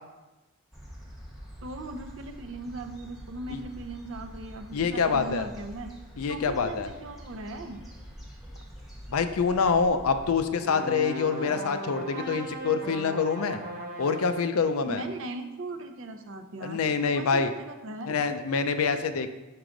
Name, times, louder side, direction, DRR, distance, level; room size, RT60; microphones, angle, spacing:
sound 1, 0.7-10.5, equal, ahead, 1.0 m, -45 dB
voice 1, 1.6-5.9 6.3-7.8 14.9-18.2, right 2 dB, 60° right, 6 dB, 0.6 m, -39 dB
voice 2, 4.7-5.5 6.2-6.9 9.1-13.6 14.0-15.0 16.6-17.5 18.1-19.3, left 5 dB, 75° left, 9 dB, 0.5 m, -26 dB
sound 2, 10.6-14.6, right 1 dB, 40° right, 1.2 m, -37 dB
6.1 x 4.7 x 3.8 m, 1.1 s
head